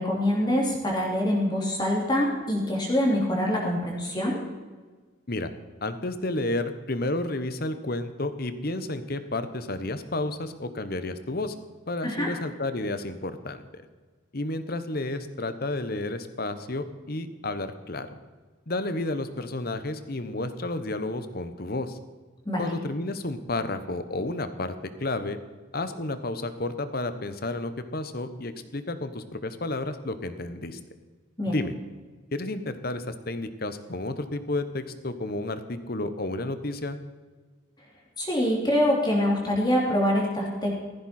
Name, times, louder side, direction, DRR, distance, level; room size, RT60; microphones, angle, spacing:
voice 1, 0.0-4.4 12.0-12.3 22.5-22.7 31.4-31.5 38.2-40.7, left 1 dB, 20° left, -2 dB, 2.7 m, -25 dB
voice 2, 5.8-11.5 11.9-13.8 14.3-18.1 18.7-22.0 22.6-24.7 25.0-25.4 25.7-30.8 31.5-31.7 32.3-37.0, left 2 dB, 45° left, 10 dB, 1.1 m, -31 dB
15.5 x 14.5 x 4.4 m, 1.4 s
head